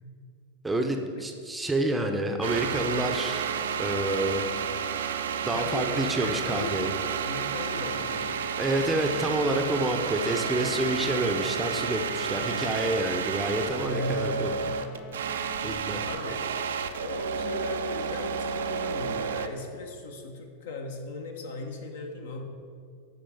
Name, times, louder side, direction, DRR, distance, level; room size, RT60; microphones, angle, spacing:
voice 1, 0.6-3.5 3.8-4.5 5.4-6.9 8.6-14.5 15.6-16.0, right 1 dB, 10° right, 4 dB, 0.6 m, -28 dB
sound 1, 2.4-19.5, right 6 dB, 65° right, 0.4 m, -31 dB
voice 2, 5.5-8.4 13.8-14.6 16.1-16.4 17.0-22.4, left 3 dB, 60° left, 4 dB, 0.9 m, -37 dB
sound 2, 8.8-15.8, left 8 dB, 40° left, 0.4 m, -45 dB
12.5 x 5.0 x 3.4 m, 2.2 s
figure-of-eight pair, 90°, 0 cm